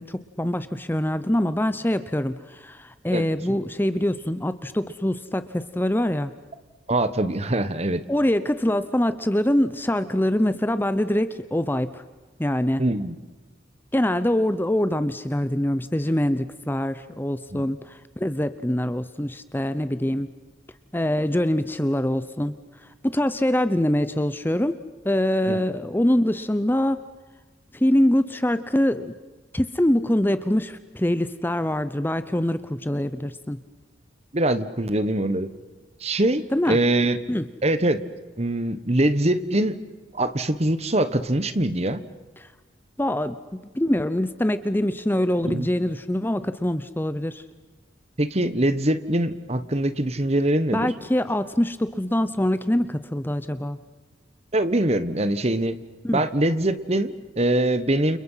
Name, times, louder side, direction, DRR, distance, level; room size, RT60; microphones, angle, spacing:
voice 1, 0.0-6.3 8.1-12.0 12.4-12.8 13.9-20.3 20.9-22.5 23.0-24.8 25.0-27.0 27.7-29.1 29.5-33.6 36.5-36.8 37.3-37.4 42.4-42.5 43.0-47.4 50.7-53.8 56.0-56.2, left 1 dB, 10° left, 12 dB, 0.7 m, -24 dB
voice 2, 6.9-8.0 12.8-13.1 17.5-17.6 25.5-25.6 34.3-35.5 36.0-37.2 37.6-38.0 38.4-39.8 40.1-42.0 45.4-45.7 48.2-50.9 54.5-55.8 56.1-58.2, right 1 dB, 35° right, 12 dB, 1.3 m, -23 dB
29.5 x 29.5 x 5.8 m, 1.3 s
head